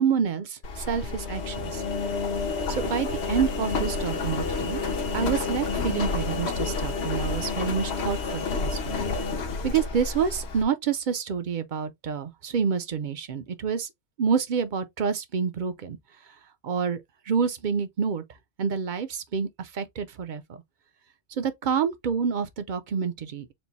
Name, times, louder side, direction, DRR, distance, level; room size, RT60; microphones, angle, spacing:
voice 1, 0.0-1.8 2.7-4.8 5.1-9.0 9.4-13.9 14.2-16.0 16.6-17.0 17.3-18.2 18.6-20.6 21.4-23.5, right 6 dB, 55° right, 0.7 m, -28 dB
Engine, 0.6-10.6, left 4 dB, 80° left, 1.1 m, -29 dB
4.5 x 2.0 x 4.0 m
omnidirectional pair, 1.1 m